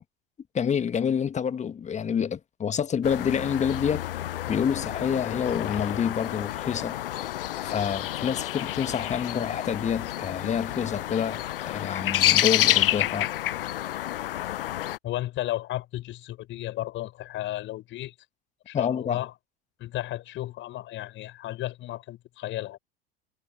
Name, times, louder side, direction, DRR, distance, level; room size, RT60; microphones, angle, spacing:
voice 1, 0.5-4.1 4.5-7.0 7.6-13.3 18.7-19.3, left 7 dB, 25° left, 1.9 m, -28 dB
sound 1, 3.0-15.0, left 13 dB, 65° left, 1.0 m, -29 dB
voice 2, 15.0-18.1 18.7-19.3 19.8-22.8, left 14 dB, 40° left, 6.9 m, -33 dB
figure-of-eight pair, 80°, 30 cm